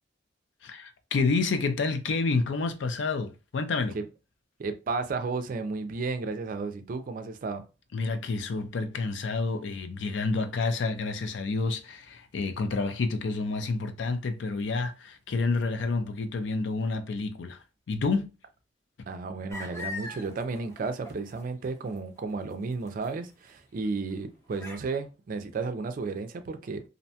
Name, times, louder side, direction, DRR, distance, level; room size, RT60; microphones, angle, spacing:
voice 1, 0.6-4.0 7.9-17.6 17.9-18.3, left 3 dB, 85° left, 0.4 m, -29 dB
voice 2, 4.6-7.6 19.1-26.8, right 4 dB, 50° right, 0.4 m, -33 dB
sound 1, 19.5-21.7 21.9-23.1 23.5-23.6 24.1-24.2 24.5-24.8, left 3 dB, 15° left, 0.7 m, -40 dB
2.5 x 2.1 x 2.7 m
head